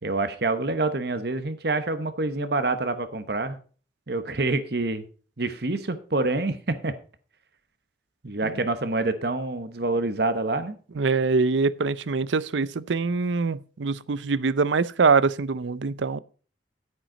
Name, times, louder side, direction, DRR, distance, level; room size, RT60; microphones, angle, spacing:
voice 1, 0.0-3.6 4.1-5.0 5.4-6.9 8.2-10.8, right 2 dB, 60° right, 1.0 m, -27 dB
voice 2, 11.0-16.2, right 4 dB, 80° right, 0.6 m, -24 dB
9.6 x 9.2 x 3.9 m
head